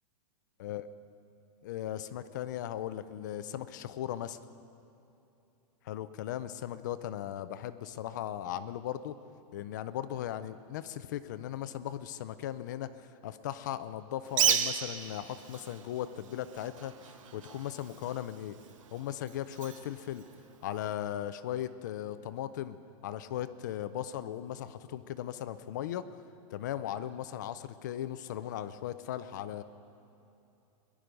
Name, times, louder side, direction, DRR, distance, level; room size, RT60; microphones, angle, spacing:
voice 1, 1.6-4.4 5.8-9.2 9.5-18.6 18.9-20.2 20.6-22.8 23.0-26.1 26.5-29.6, left 11 dB, 30° left, 12 dB, 0.4 m, -37 dB
Bird, 14.3-20.9, right 8 dB, 60° right, 1.0 m, -35 dB
22.0 x 11.0 x 5.1 m, 2.8 s
supercardioid pair, 175°, 19 cm